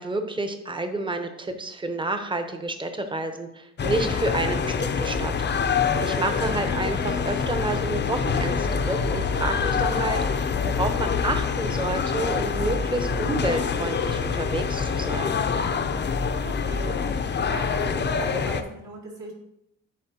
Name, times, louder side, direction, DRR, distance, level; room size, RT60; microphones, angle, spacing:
voice 1, 0.0-5.3 6.0-15.4, right 2 dB, 15° right, 7 dB, 0.9 m, -29 dB
sound 1, 3.8-18.6, left 6 dB, 35° left, 0.6 m, -25 dB
voice 2, 16.4-17.0 17.3-19.3, right 3 dB, 65° right, -5 dB, 2.5 m, -38 dB
11.0 x 4.2 x 2.8 m, 0.80 s
cardioid pair, 90°, 30 cm